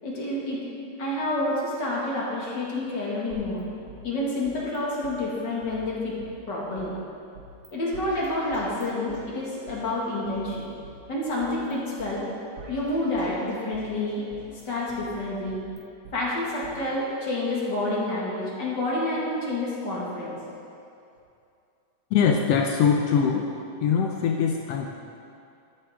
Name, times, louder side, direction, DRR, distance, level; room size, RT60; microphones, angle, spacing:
voice 1, 0.0-0.6 1.0-3.6 4.0-6.2 6.5-6.9 7.7-10.7 11.1-12.3 12.7-14.3 14.7-15.6 16.1-20.4, left 1 dB, 40° left, -5 dB, 2.2 m, -28 dB
sound 1, 3.3-4.8 5.0-5.1 5.6-6.9 7.3-7.7 7.9-9.8 10.2-11.7 12.0-12.1 12.6-13.9 14.3-16.2 16.6-16.7, right 1 dB, 50° right, 2.2 m, -47 dB
voice 2, 22.1-23.5 23.8-24.9, left 7 dB, 85° left, 2 dB, 1.3 m, -22 dB
14.0 x 9.7 x 3.6 m, 2.6 s
omnidirectional pair, 3.5 m